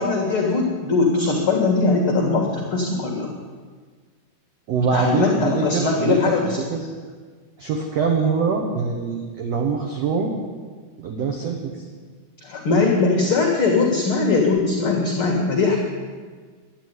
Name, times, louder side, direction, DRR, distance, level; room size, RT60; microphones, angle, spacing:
voice 1, 0.0-3.3 4.9-6.6 12.4-15.8, left 3 dB, 50° left, 0 dB, 1.8 m, -20 dB
voice 2, 4.7-6.9 7.6-10.4 11.0-11.9, right 5 dB, 65° right, 2 dB, 1.6 m, -24 dB
12.0 x 10.5 x 9.6 m, 1.6 s
omnidirectional pair, 4.6 m